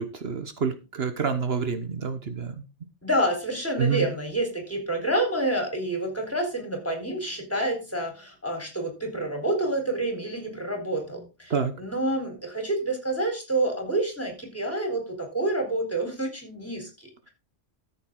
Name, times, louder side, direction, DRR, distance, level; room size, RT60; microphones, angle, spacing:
voice 1, 0.0-2.5 3.8-4.1 11.5-11.7, right 6 dB, 60° right, 9 dB, 1.3 m, -28 dB
voice 2, 3.0-17.3, right 1 dB, 10° left, 2 dB, 4.0 m, -28 dB
14.0 x 7.4 x 3.8 m, 0.29 s
omnidirectional pair, 1.2 m